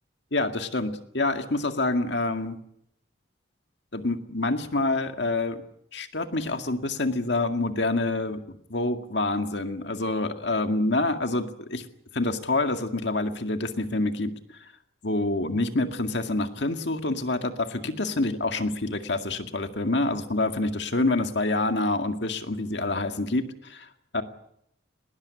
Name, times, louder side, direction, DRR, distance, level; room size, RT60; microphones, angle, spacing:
voice 1, 0.3-2.6 3.9-5.6 5.9-11.8 12.1-14.3 15.0-23.9 24.1-24.2, left 2 dB, 60° left, 7 dB, 2.1 m, -27 dB
20.0 x 19.5 x 9.9 m, 0.75 s
head